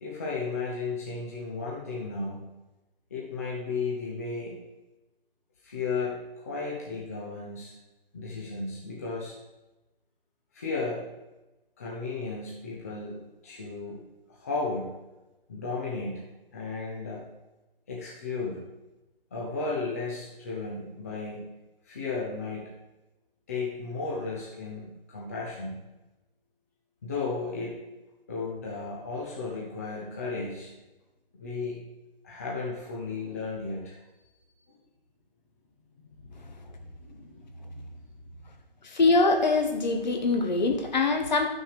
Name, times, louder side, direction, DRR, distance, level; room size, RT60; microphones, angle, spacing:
voice 1, 0.0-2.4 3.1-4.6 5.6-7.7 8.1-9.4 10.5-11.1 11.8-14.0 14.3-14.9 15.5-16.2 16.5-17.2 17.9-18.6 19.3-21.5 21.8-22.7 23.5-25.8 27.0-27.8 28.3-30.7 31.3-31.8 32.2-34.0 36.2-37.9, left 4 dB, 15° left, -4 dB, 0.8 m, -34 dB
voice 2, 38.8-41.5, left 3 dB, 45° left, 5 dB, 1.4 m, -23 dB
11.0 x 6.3 x 4.9 m, 1.0 s
hypercardioid pair, 165°, 30 cm